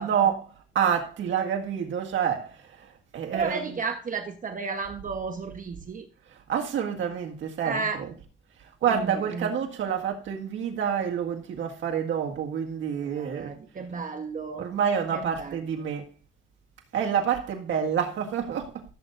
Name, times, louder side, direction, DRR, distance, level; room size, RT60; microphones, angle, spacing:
voice 1, 0.0-3.9 6.3-8.2 8.6-13.5 14.6-16.1 16.9-18.8, right 8 dB, 75° right, 1.8 m, -28 dB
voice 2, 3.3-6.1 7.6-8.0 8.9-9.5 13.0-14.7 15.1-15.8, right 5 dB, 40° right, 1.1 m, -33 dB
16.0 x 8.0 x 2.6 m
cardioid pair, 90°, 20 cm